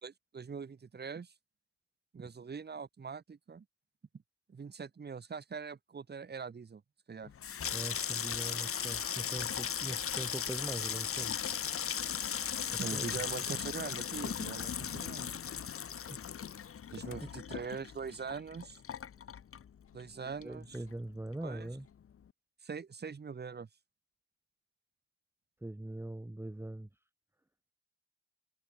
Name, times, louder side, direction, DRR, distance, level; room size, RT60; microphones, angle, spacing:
voice 1, 0.0-1.3 2.1-3.6 4.5-6.8 7.1-7.3 12.8-15.4 16.9-18.8 19.9-20.8 21.4-21.7 22.6-23.7, right 5 dB, 35° right, 2.8 m, -42 dB
Water tap faucet / Sink (filling or washing), 7.3-20.1 20.4-21.1 21.3-21.7, left 8 dB, 50° left, 2.1 m, -37 dB
voice 2, 7.7-11.4 12.7-13.2 16.1-16.2 17.2-17.3 20.4-21.9 25.6-26.9, right 1 dB, 10° right, 3.8 m, -42 dB
cardioid pair, 95°, 29 cm